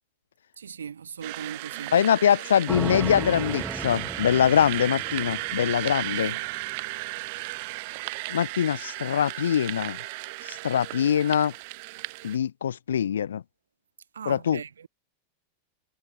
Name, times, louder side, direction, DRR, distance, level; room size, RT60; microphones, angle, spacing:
voice 1, 0.6-1.9 6.0-6.4 14.1-14.9, right 7 dB, 70° right, 4.0 m, -39 dB
sound 1, 1.2-12.4, right 26 dB, 50° right, 1.9 m, -35 dB
voice 2, 1.9-6.3 8.3-10.0 10.4-11.5 12.2-13.4 14.2-14.6, left 9 dB, 65° left, 1.5 m, -23 dB
sound 2, 2.7-6.8, right 2 dB, 5° right, 4.6 m, -36 dB
figure-of-eight pair, 90°, 0 cm